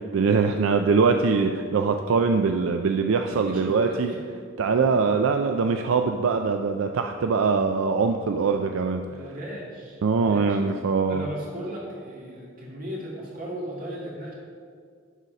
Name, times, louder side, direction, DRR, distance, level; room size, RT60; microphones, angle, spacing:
voice 1, 0.0-4.1 4.6-9.0 10.0-11.3, right 5 dB, 75° right, 5 dB, 0.4 m, -22 dB
voice 2, 3.3-4.2 5.0-5.1 9.0-10.6 11.1-14.3, equal, 45° right, -4 dB, 2.1 m, -37 dB
11.0 x 4.1 x 5.3 m, 2.1 s
head